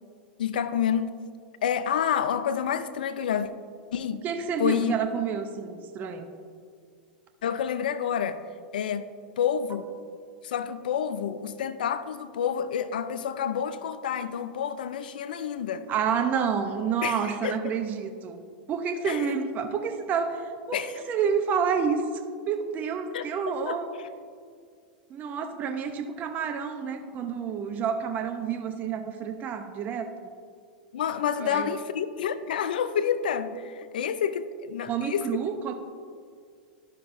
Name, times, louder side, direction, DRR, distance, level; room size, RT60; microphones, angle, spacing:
voice 1, 0.4-1.2 1.6-3.5 3.9-4.2 4.6-5.0 7.4-8.4 8.7-9.1 9.4-9.9 10.4-15.8 17.0-17.7 19.1-19.3 20.7-20.9 23.1-23.3 23.7-23.8 30.9-35.5, left 8 dB, 80° left, 13 dB, 0.4 m, -28 dB
voice 2, 4.2-6.3 15.9-18.4 18.7-22.2 22.5-23.9 25.1-30.1 31.4-31.7 34.9-35.7, right 6 dB, 35° right, 6 dB, 0.7 m, -29 dB
12.0 x 5.7 x 2.6 m, 2.2 s
hypercardioid pair, 105°, 5 cm